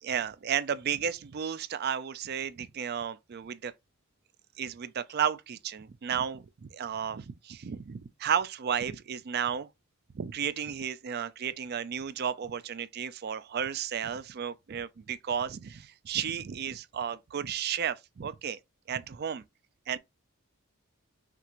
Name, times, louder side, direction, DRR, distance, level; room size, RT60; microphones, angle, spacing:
voice 1, 0.0-3.7 4.6-9.7 10.1-18.6 18.9-19.4 19.9-20.0, right 8 dB, 45° right, 0.4 m, -33 dB
5.8 x 2.5 x 3.0 m
head